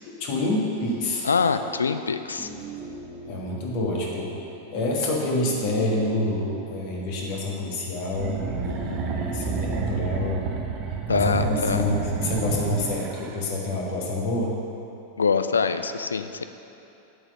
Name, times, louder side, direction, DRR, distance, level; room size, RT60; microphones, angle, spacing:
voice 1, 0.1-1.3 3.3-4.3 4.7-10.5 11.1-14.6, left 2 dB, 45° left, -2 dB, 1.5 m, -27 dB
sound 1, 0.7-13.1, right 3 dB, 15° right, 1.0 m, -42 dB
voice 2, 1.2-2.5 11.1-11.8 15.2-16.4, left 5 dB, 75° left, 10 dB, 0.3 m, -24 dB
sound 2, 8.1-13.4, right 6 dB, 35° right, 0.7 m, -29 dB
8.4 x 4.6 x 6.6 m, 2.8 s
figure-of-eight pair, 90°, 0 cm